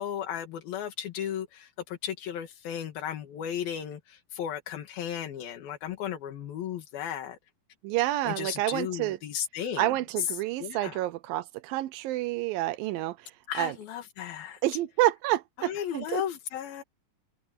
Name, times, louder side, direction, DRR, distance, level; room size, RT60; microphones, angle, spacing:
voice 1, 0.0-7.4 8.3-11.0 13.5-14.6 15.6-16.8, left 9 dB, 80° left, 3.7 m, -35 dB
voice 2, 7.8-9.2 9.8-13.2 13.6-13.7 14.6-16.2, right 16 dB, 80° right, 2.4 m, -28 dB
omnidirectional pair, 4.2 m